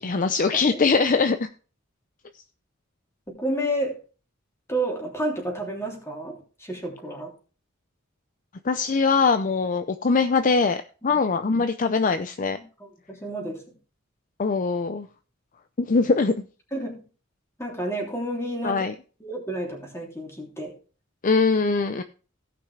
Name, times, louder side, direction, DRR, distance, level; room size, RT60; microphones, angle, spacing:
voice 1, 0.0-1.5 8.6-12.6 14.4-15.1 15.8-16.3 18.6-18.9 21.2-22.0, left 4 dB, 40° left, 9 dB, 0.5 m, -22 dB
voice 2, 3.3-4.0 4.7-7.3 11.0-11.2 12.5-13.7 16.7-17.0 17.6-18.9 19.2-20.7, right 1 dB, 15° left, -1 dB, 3.1 m, -31 dB
17.0 x 6.0 x 3.3 m, 0.36 s
head